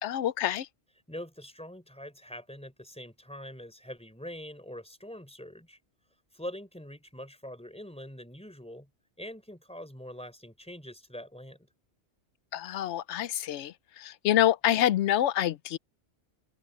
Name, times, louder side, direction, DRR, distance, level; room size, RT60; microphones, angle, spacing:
voice 1, 0.0-0.7 12.5-13.7 14.0-15.8, left 12 dB, 75° left, 0.9 m, -26 dB
voice 2, 1.1-5.8 6.3-8.9 9.2-11.6, equal, 5° left, 4.0 m, -43 dB
omnidirectional pair, 1.2 m